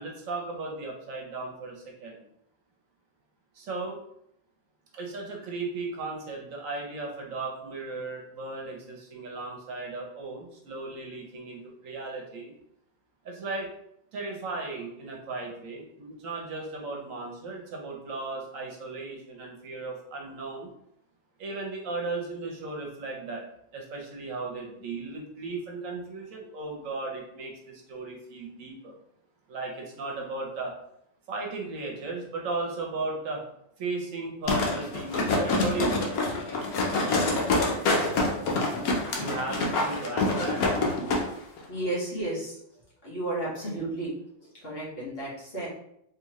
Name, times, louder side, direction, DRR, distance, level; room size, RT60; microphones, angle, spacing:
voice 1, 0.0-2.2 3.5-4.0 4.9-12.5 13.2-13.7 14.1-20.7 21.4-23.4 23.7-28.9 29.5-30.7 31.3-33.4 33.8-36.2 39.1-40.6, right 3 dB, 70° right, 0 dB, 1.1 m, -36 dB
sound 1, 34.5-41.2 41.6-41.7, left 2 dB, 85° left, 1.2 m, -26 dB
voice 2, 41.7-42.6 43.0-44.1 44.6-45.7, right 2 dB, 45° left, -7 dB, 1.5 m, -32 dB
3.8 x 3.0 x 3.0 m, 0.76 s
omnidirectional pair, 1.5 m